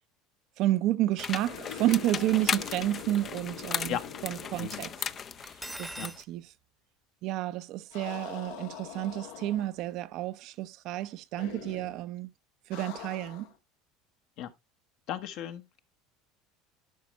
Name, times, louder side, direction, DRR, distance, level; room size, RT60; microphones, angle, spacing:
voice 1, 0.6-4.9 5.8-6.5 7.2-12.3 12.7-13.5, right 14 dB, 60° right, 0.6 m, -30 dB
sound 1, 1.2-6.2, left 7 dB, 35° left, 0.4 m, -36 dB
sound 2, 1.4-5.5 5.8-5.9 7.9-9.9 11.3-12.0 12.7-13.6, left 8 dB, 85° left, 1.5 m, -44 dB
Cutlery silverware, 5.4-6.2, right 1 dB, 5° right, 0.8 m, -41 dB
voice 2, 15.1-15.8, left 11 dB, 65° left, 1.1 m, -35 dB
11.0 x 5.1 x 3.1 m
supercardioid pair, 105°, 0 cm